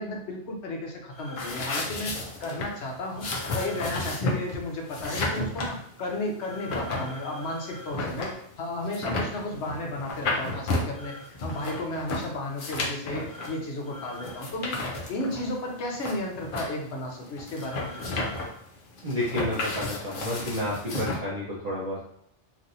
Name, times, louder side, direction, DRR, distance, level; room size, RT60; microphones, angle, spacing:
voice 1, 0.0-2.1 2.4-3.3 3.5-14.8 15.1-18.4, left 1 dB, 70° left, 0 dB, 1.0 m, -33 dB
sound 1, 1.1-1.7 3.1-4.2 6.4-7.9 10.9-11.8 13.3-13.6 13.8-14.5 17.5-18.5, left 1 dB, 20° left, 1.0 m, -44 dB
sound 2, 1.4-21.2, left 2 dB, 55° left, 0.7 m, -32 dB
voice 2, 19.0-22.0, left 1 dB, 40° right, -8 dB, 0.7 m, -30 dB
3.0 x 2.6 x 2.6 m, 0.68 s
omnidirectional pair, 1.2 m